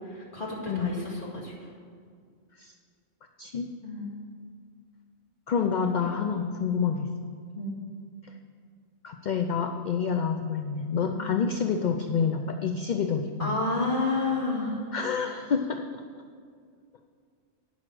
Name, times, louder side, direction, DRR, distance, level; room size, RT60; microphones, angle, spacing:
voice 1, 0.0-1.7 3.8-4.1 6.9-7.0 7.5-7.8 11.1-11.3 13.4-14.9, left 2 dB, 40° left, -5 dB, 2.3 m, -30 dB
voice 2, 0.7-1.0 2.6-2.7 3.4-3.7 5.5-7.1 8.2-8.3 9.0-13.6 14.9-16.0, left 6 dB, 60° left, 6 dB, 0.5 m, -28 dB
8.9 x 6.3 x 7.6 m, 2.1 s
omnidirectional pair, 1.3 m